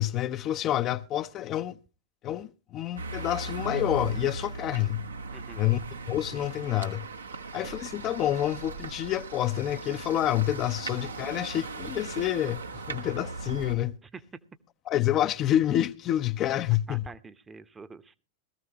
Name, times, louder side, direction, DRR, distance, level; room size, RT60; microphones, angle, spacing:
voice 1, 0.0-1.8 2.2-5.0 5.6-5.8 6.1-7.1 7.5-14.0 14.9-17.0, left 12 dB, 35° left, 0.5 m, -28 dB
sound 1, 3.0-13.7, right 3 dB, 75° right, 1.0 m, -38 dB
voice 2, 5.3-5.7 14.0-14.4 16.9-18.2, right 4 dB, 15° right, 0.8 m, -46 dB
18.0 x 14.0 x 2.9 m
figure-of-eight pair, 90°, 0 cm